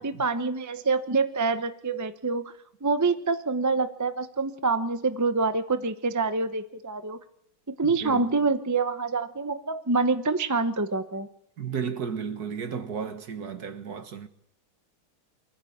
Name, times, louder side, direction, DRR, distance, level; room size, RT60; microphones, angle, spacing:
voice 1, 0.0-2.5 2.8-7.2 7.7-11.3, right 4 dB, 20° right, 0.5 m, -26 dB
voice 2, 7.8-8.3 11.6-14.3, right 6 dB, 55° right, 2.0 m, -34 dB
24.5 x 15.0 x 8.7 m
omnidirectional pair, 2.1 m